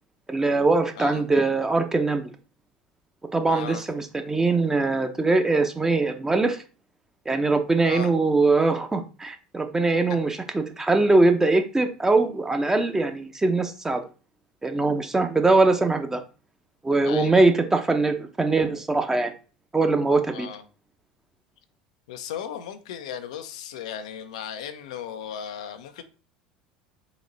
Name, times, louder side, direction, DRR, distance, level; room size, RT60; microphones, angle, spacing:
voice 1, 0.3-2.2 3.3-6.6 7.3-14.0 14.6-16.2 16.8-19.3 19.7-20.5, right 3 dB, 15° right, 0.8 m, -22 dB
voice 2, 3.5-3.8 7.8-8.1 17.0-17.4 20.3-20.6 22.1-26.0, left 8 dB, 70° left, 0.5 m, -36 dB
4.0 x 2.8 x 3.9 m
figure-of-eight pair, 75°, 4 cm